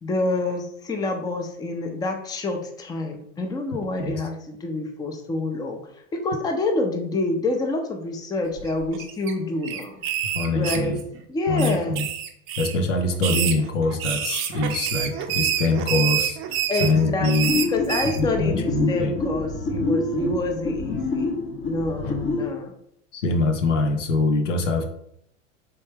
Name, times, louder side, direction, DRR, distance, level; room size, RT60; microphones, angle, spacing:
voice 1, 0.0-5.8 6.1-10.0 10.5-11.0 11.3-12.0 16.7-21.4 21.7-22.7, left 2 dB, 10° left, 4 dB, 0.5 m, -27 dB
sound 1, 8.6-9.3 9.6-11.2 11.6-12.8 13.1-18.2, right 10 dB, 35° right, 0.6 m, -27 dB
voice 2, 10.3-11.0 11.5-12.1 12.6-17.5 18.2-19.2 20.2-20.3 23.1-24.9, left 2 dB, 75° left, 5 dB, 0.8 m, -24 dB
sound 2, 17.5-22.5, left 3 dB, 35° left, 1.0 m, -27 dB
4.1 x 3.4 x 3.3 m, 0.71 s
figure-of-eight pair, 85°, 38 cm